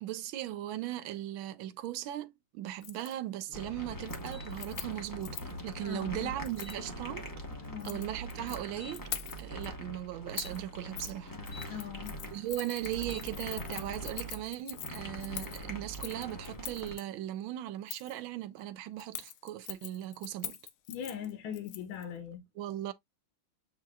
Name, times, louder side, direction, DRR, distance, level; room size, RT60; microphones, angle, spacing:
voice 1, 0.0-7.2 7.8-9.0 9.4-11.3 11.7-11.8 12.3-20.6 22.6-22.9, right 13 dB, 75° right, 1.3 m, -38 dB
Keys jangling, 2.8-3.1 3.5-3.8 4.0-5.6 6.4-6.8 7.6-8.6 8.9-9.7 10.4-10.6 11.0-11.1 11.4-17.0 17.9-18.2 19.0-22.0 22.3-22.4, left 12 dB, 90° left, 1.6 m, -43 dB
sound 1, 3.5-16.9, right 1 dB, 20° left, 0.5 m, -43 dB
sound 2, 4.3-4.5 6.6-6.8 8.8-9.0 10.3-11.7 12.9-13.3, left 4 dB, 50° left, 1.2 m, -51 dB
voice 2, 5.8-6.3 7.6-8.0 11.7-12.1 20.9-22.4, left 9 dB, 75° left, 1.6 m, -40 dB
7.5 x 2.9 x 2.3 m
omnidirectional pair, 2.3 m